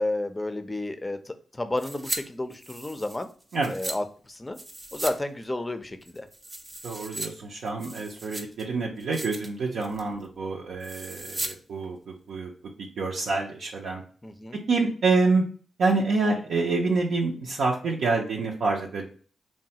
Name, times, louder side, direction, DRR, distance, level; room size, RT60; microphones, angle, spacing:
voice 1, 0.0-3.3 3.7-4.6 4.9-6.3 14.2-14.6, left 2 dB, 25° left, 9 dB, 0.4 m, -31 dB
sound 1, 1.8-2.2 2.5-4.0 4.5-5.2 5.4-5.5 6.0-7.3 7.7-8.6 9.0-9.5 9.8-10.1 10.8-11.5 11.8-11.9, right 1 dB, 25° right, 0.5 m, -37 dB
voice 2, 6.8-12.5 13.0-14.0 14.7-15.4 15.8-19.1, right 3 dB, 80° right, -2 dB, 0.5 m, -27 dB
3.0 x 2.2 x 2.7 m, 0.42 s
supercardioid pair, 45°, 0 cm